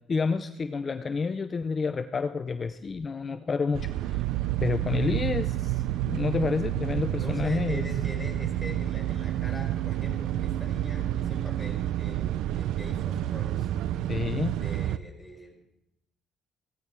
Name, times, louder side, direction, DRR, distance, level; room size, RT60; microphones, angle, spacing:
voice 1, 0.1-4.2 4.6-7.8 14.1-14.6, left 4 dB, 30° left, 9 dB, 0.6 m, -29 dB
sound 1, 3.7-15.0, right 13 dB, 80° right, 0.5 m, -29 dB
voice 2, 7.1-13.7 14.5-15.6, left 1 dB, 5° left, 0 dB, 4.7 m, -42 dB
16.0 x 14.5 x 4.7 m, 0.85 s
cardioid pair, 125°, 0 cm